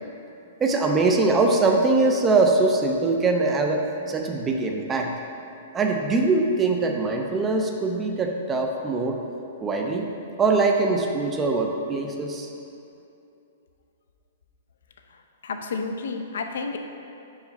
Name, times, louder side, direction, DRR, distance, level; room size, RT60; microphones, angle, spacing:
voice 1, 0.6-5.1 5.7-9.2 9.6-10.1 10.4-12.5, right 3 dB, 10° right, 3 dB, 0.4 m, -22 dB
voice 2, 15.1-16.8, left 4 dB, 75° left, 5 dB, 0.6 m, -31 dB
5.5 x 4.8 x 4.0 m, 2.7 s
hypercardioid pair, 170°, 0 cm